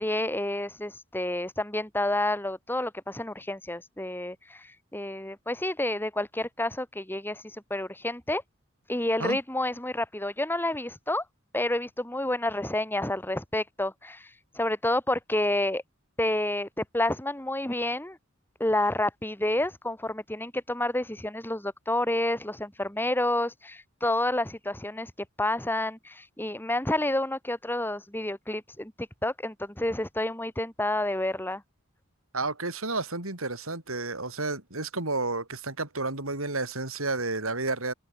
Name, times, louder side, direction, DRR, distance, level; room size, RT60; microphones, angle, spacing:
voice 1, 0.0-8.4 8.9-11.2 11.5-14.3 14.5-15.8 16.2-18.2 18.6-25.1 25.4-31.6, left 1 dB, 10° left, 2.5 m, -29 dB
voice 2, 32.3-37.9, right 3 dB, 85° right, 7.1 m, -31 dB
head